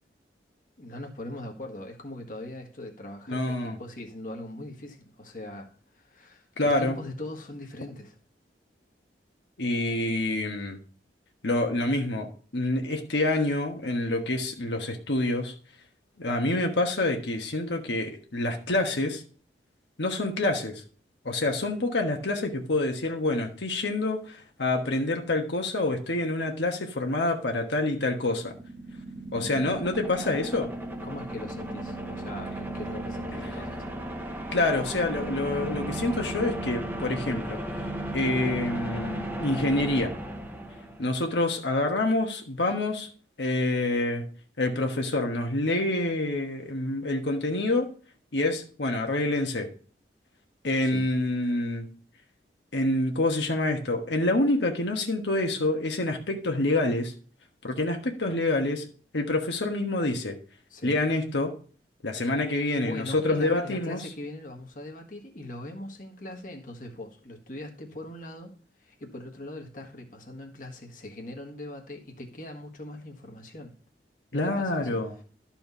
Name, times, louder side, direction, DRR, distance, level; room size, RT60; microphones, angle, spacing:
voice 1, 0.8-5.7 5.9-8.2 31.0-33.8 50.8-51.1 60.7-60.9 62.5-68.5 68.8-73.7 74.3-75.0, left 1 dB, 50° left, 1.5 m, -41 dB
voice 2, 3.3-3.8 6.6-7.0 9.6-10.8 11.4-15.5 16.2-19.2 20.0-20.8 21.2-28.5 29.3-30.7 34.5-37.6 38.1-40.1 41.0-43.1 43.4-44.2 44.6-47.9 48.3-49.7 50.6-51.9 52.7-57.1 57.6-58.8 59.1-60.4 60.8-61.5 62.0-64.0 74.3-75.1, left 2 dB, 85° left, 1.4 m, -27 dB
sound 1, 28.2-41.3, right 1 dB, 10° right, 0.9 m, -35 dB
12.5 x 4.5 x 5.5 m
head